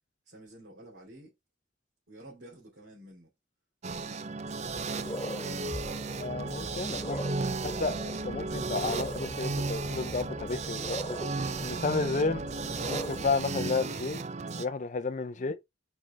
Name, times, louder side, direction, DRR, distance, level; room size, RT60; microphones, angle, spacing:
voice 1, 0.2-1.3 2.1-3.3 4.0-6.2 15.3-15.5, right 1 dB, 60° right, 3.3 m, -52 dB
sound 1, 3.8-14.6, right 3 dB, 35° right, 0.5 m, -35 dB
sound 2, 3.9-4.0 4.5-13.3, equal, 15° left, 1.7 m, -41 dB
voice 2, 6.2-7.2 7.6-7.9 8.3-11.2 11.6-12.4 12.9-14.2 14.6-15.6, left 4 dB, 40° left, 0.5 m, -32 dB
6.2 x 4.8 x 3.3 m
head